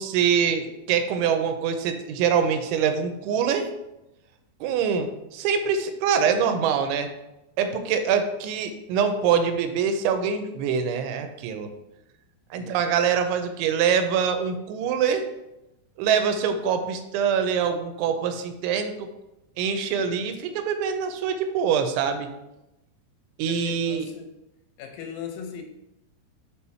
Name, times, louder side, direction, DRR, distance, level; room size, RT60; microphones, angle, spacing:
voice 1, 0.0-3.7 4.6-7.1 7.6-11.7 12.5-15.3 16.0-19.1 19.6-22.3 23.4-24.1, right 7 dB, 90° right, 7 dB, 3.0 m, -24 dB
voice 2, 23.5-24.4 24.8-25.6, left 7 dB, 85° left, 4 dB, 3.3 m, -39 dB
7.1 x 4.2 x 4.3 m, 0.92 s
omnidirectional pair, 5.3 m